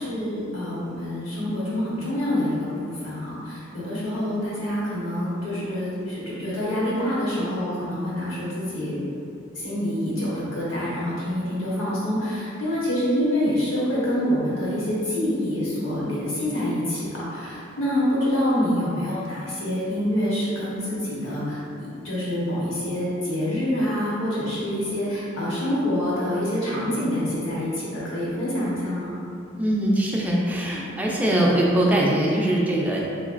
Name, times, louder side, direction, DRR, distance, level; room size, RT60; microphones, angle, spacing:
voice 1, 0.0-9.0 9.5-29.2, left 1 dB, 75° left, -8 dB, 1.1 m, -26 dB
voice 2, 29.6-33.0, right 1 dB, 10° right, -4 dB, 0.3 m, -22 dB
3.5 x 3.0 x 2.5 m, 2.5 s
head